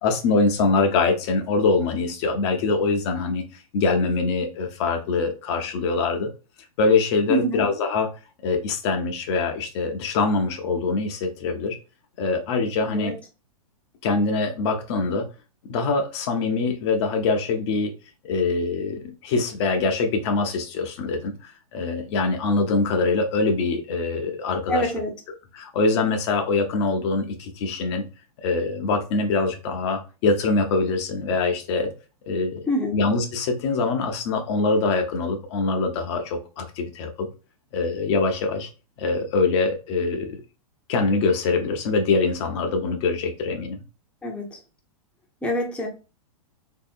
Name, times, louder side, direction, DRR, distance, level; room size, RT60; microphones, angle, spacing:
voice 1, 0.0-6.3 6.8-8.1 8.4-11.8 12.2-13.1 14.0-15.3 15.6-17.9 18.2-24.9 25.5-28.0 28.4-31.9 32.3-32.6 32.9-37.3 37.7-38.7 39.0-40.4 40.9-43.8, left 3 dB, 50° left, 4 dB, 0.6 m, -24 dB
voice 2, 7.3-7.7 12.9-13.1 24.7-25.1 32.7-33.0 44.2-44.6 45.4-45.9, equal, 5° left, 0 dB, 0.6 m, -25 dB
3.4 x 2.7 x 2.4 m, 0.33 s
hypercardioid pair, 115°, 19 cm